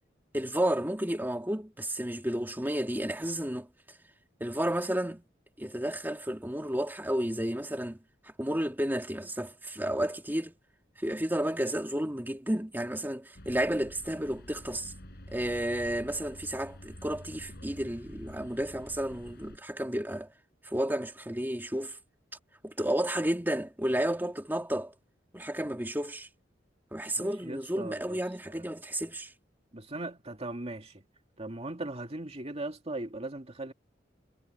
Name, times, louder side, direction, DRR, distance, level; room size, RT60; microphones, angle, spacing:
voice 1, 0.3-3.7 4.4-5.2 5.6-8.0 8.4-10.5 11.0-14.9 15.3-20.3 20.6-22.0 22.6-24.9 25.3-26.3 26.9-29.3, right 1 dB, 10° right, 2.4 m, -32 dB
sound 1, 13.3-19.6, equal, 60° left, 5.4 m, -48 dB
voice 2, 27.2-28.2 28.5-28.6 29.7-31.0 31.4-33.7, right 2 dB, 35° right, 2.3 m, -39 dB
head